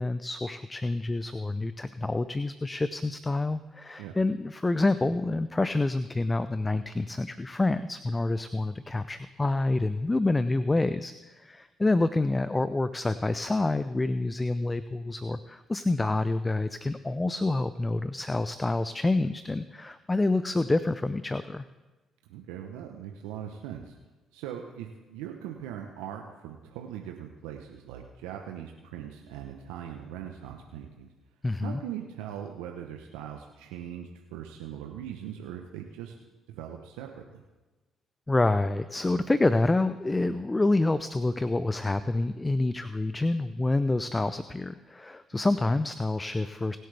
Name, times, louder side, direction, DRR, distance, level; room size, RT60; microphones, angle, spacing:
voice 1, 0.0-21.6 31.4-31.8 38.3-46.8, left 2 dB, 20° left, 13 dB, 0.5 m, -27 dB
voice 2, 22.3-24.0 24.3-31.1 31.6-36.1 36.5-37.4 43.9-44.0, right 9 dB, 80° right, 3 dB, 0.9 m, -40 dB
23.0 x 7.8 x 3.4 m, 1.2 s
hypercardioid pair, 50°, 0 cm